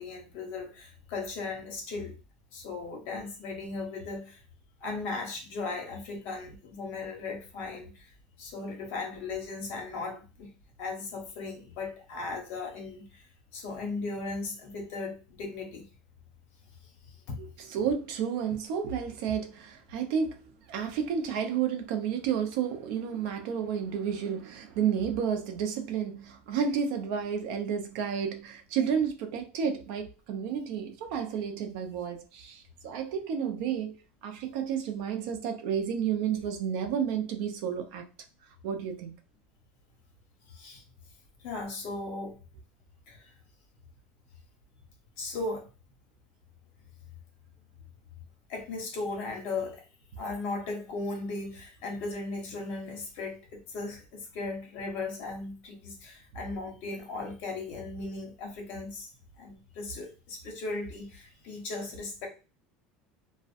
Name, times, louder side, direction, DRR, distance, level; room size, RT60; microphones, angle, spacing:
voice 1, 0.0-2.1 2.5-4.4 4.8-8.1 8.4-10.5 10.8-13.3 13.5-15.9 17.3-17.4 40.5-40.8 41.4-42.4 43.1-43.3 45.2-45.7 48.5-49.8 50.2-59.1 59.4-62.3, left 3 dB, 55° left, 1.0 m, -37 dB
voice 2, 17.4-20.4 20.7-38.1 38.6-39.1, right 7 dB, 65° right, 0.5 m, -31 dB
2.4 x 2.2 x 2.5 m
cardioid pair, 150°, 4 cm